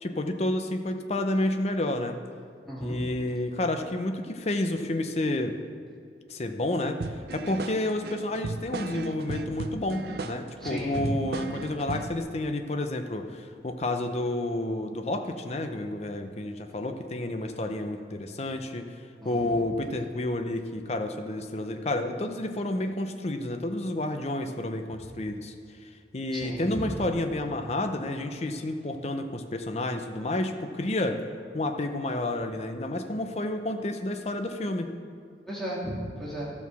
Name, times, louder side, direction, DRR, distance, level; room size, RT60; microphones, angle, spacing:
voice 1, 0.0-2.2 2.8-5.6 6.3-7.0 7.3-18.9 19.2-25.5 26.1-31.2 31.5-34.9, left 1 dB, 35° left, 6 dB, 0.6 m, -30 dB
voice 2, 2.7-3.1 10.6-11.1 19.2-19.6 26.3-26.9 35.5-36.5, equal, ahead, -7 dB, 2.2 m, -35 dB
sound 1, 7.0-12.2, right 3 dB, 60° right, 0.5 m, -36 dB
12.5 x 4.6 x 6.9 m, 2.3 s
head